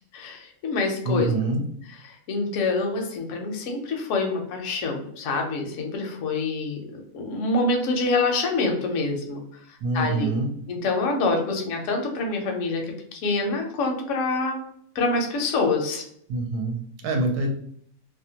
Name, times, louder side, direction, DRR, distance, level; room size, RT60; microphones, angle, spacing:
voice 1, 0.1-1.3 2.0-9.4 9.7-10.3 10.7-14.6 14.9-16.0, left 3 dB, 65° left, 2 dB, 0.8 m, -26 dB
voice 2, 1.1-1.6 9.8-10.5 16.3-17.5, right 2 dB, 75° right, 2 dB, 1.1 m, -25 dB
2.7 x 2.1 x 2.8 m, 0.65 s
omnidirectional pair, 1.7 m